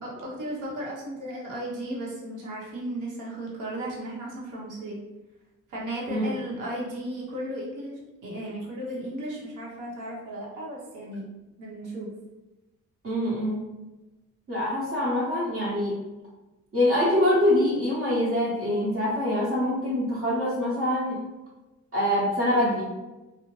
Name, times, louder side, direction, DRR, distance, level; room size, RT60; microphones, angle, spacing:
voice 1, 0.0-5.0 5.7-11.2 11.6-12.1, right 1 dB, 85° right, -3 dB, 0.8 m, -35 dB
voice 2, 13.0-13.6 14.5-16.0 16.7-21.2 21.9-22.9, left 1 dB, 50° right, -8 dB, 1.0 m, -24 dB
2.6 x 2.0 x 3.0 m, 1.1 s
cardioid pair, 90°, 30 cm